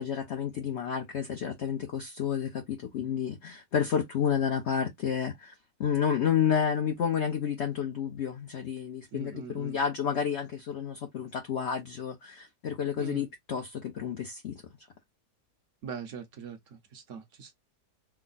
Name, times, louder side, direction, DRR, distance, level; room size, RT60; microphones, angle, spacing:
voice 1, 0.0-5.5 5.8-14.6, left 8 dB, 55° left, 0.8 m, -30 dB
voice 2, 9.1-9.8 13.0-13.2 15.8-17.5, right 6 dB, 60° right, 0.9 m, -41 dB
3.5 x 2.1 x 3.9 m
omnidirectional pair, 1.8 m